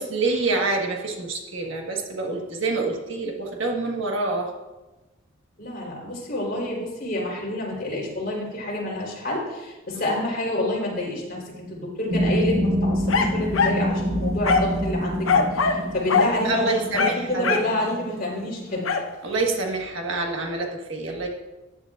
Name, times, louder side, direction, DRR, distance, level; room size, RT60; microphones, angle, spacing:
voice 1, 0.0-4.5 16.4-17.6 19.2-21.3, right 3 dB, 65° right, 1 dB, 1.5 m, -26 dB
voice 2, 5.6-16.9 17.3-18.9, left 1 dB, 45° left, -3 dB, 3.7 m, -28 dB
sound 1, 12.1-18.8, equal, 40° right, 1.0 m, -27 dB
sound 2, 13.1-13.8 14.4-14.8 15.3-16.3 16.9-17.7 18.9-19.1, left 5 dB, 70° left, 0.9 m, -22 dB
14.0 x 10.0 x 2.5 m, 1.1 s
head